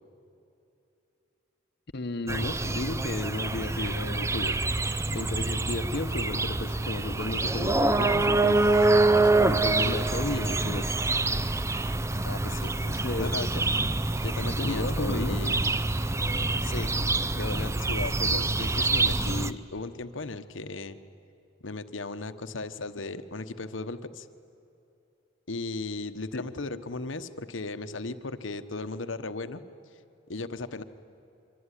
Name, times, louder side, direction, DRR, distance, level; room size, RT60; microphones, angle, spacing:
voice 1, 1.9-4.6 5.1-11.0 12.8-13.3 14.4-15.4 26.3-26.4, left 2 dB, 60° left, 8 dB, 1.0 m, -34 dB
sound 1, 2.3-19.5, right 2 dB, 15° right, 0.6 m, -26 dB
voice 2, 12.2-12.7 13.2-13.6 14.2-15.6 16.6-16.9 17.3-21.0 21.6-24.3 25.5-29.6 30.3-30.8, left 3 dB, 85° left, 10 dB, 1.1 m, -36 dB
24.5 x 24.0 x 10.0 m, 2.8 s
head